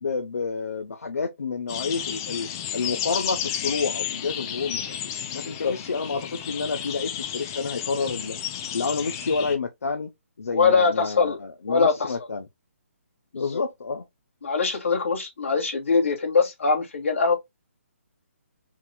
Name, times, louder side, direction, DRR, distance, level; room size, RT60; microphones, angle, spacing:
voice 1, 0.0-5.0 5.3-8.4 8.7-12.5 13.3-14.0, left 4 dB, 90° left, 0.9 m, -29 dB
sound 1, 1.7-9.6, left 9 dB, 15° left, 0.4 m, -32 dB
voice 2, 10.5-11.4 11.7-12.1 13.3-13.6 14.4-17.3, left 4 dB, 60° left, 2.6 m, -22 dB
4.8 x 3.8 x 2.3 m
hypercardioid pair, 175°, 8 cm